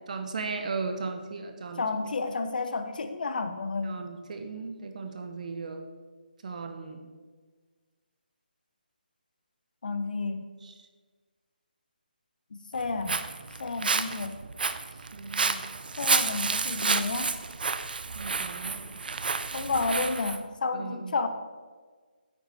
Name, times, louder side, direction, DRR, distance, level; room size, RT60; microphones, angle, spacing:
voice 1, 0.1-1.9 3.8-5.8 6.4-7.1 10.6-10.8 14.9-15.7 18.1-18.9 20.7-21.2, right 4 dB, 50° right, 6 dB, 1.1 m, -37 dB
voice 2, 1.8-4.0 9.8-10.5 12.5-13.2 13.6-14.4 16.0-17.3 19.5-21.3, left 3 dB, 60° left, 8 dB, 0.9 m, -31 dB
Walk footsteps, 12.7-20.4, right 4 dB, 70° right, 0.6 m, -30 dB
8.9 x 7.8 x 4.2 m, 1.5 s
hypercardioid pair, 165°, 5 cm